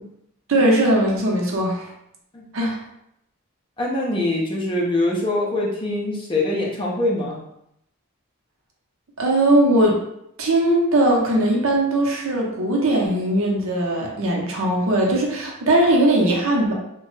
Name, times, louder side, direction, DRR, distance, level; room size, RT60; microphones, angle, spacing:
voice 1, 0.5-1.9 2.5-2.8 9.2-10.0 10.4-16.7, right 1 dB, 65° right, -1 dB, 0.7 m, -19 dB
voice 2, 3.8-7.4, left 2 dB, 25° left, -4 dB, 0.5 m, -23 dB
2.9 x 2.2 x 3.1 m, 0.77 s
head